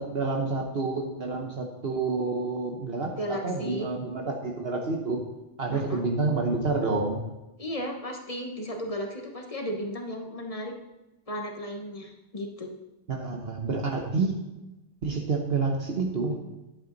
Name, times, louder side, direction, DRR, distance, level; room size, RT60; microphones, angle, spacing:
voice 1, 0.0-5.2 5.6-7.2 13.1-14.3 15.0-16.4, right 3 dB, 55° right, 1 dB, 1.2 m, -28 dB
voice 2, 3.2-3.9 5.7-6.1 7.6-10.7 11.3-12.7, equal, 30° left, 3 dB, 1.2 m, -35 dB
11.0 x 8.2 x 4.0 m, 1.0 s
omnidirectional pair, 1.2 m